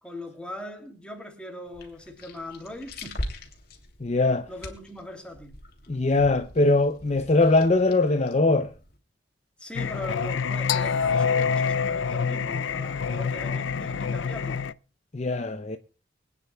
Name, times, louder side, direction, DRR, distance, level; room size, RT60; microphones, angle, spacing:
voice 1, 0.0-3.1 4.5-5.6 9.6-14.6, left 1 dB, 5° left, 3.0 m, -40 dB
sound 1, 1.7-9.0, left 1 dB, 55° left, 2.9 m, -41 dB
voice 2, 4.0-4.5 5.9-8.7 15.1-15.8, left 2 dB, 35° left, 0.7 m, -21 dB
Singing, 9.7-14.7, left 6 dB, 80° left, 0.5 m, -26 dB
24.0 x 9.7 x 2.3 m
head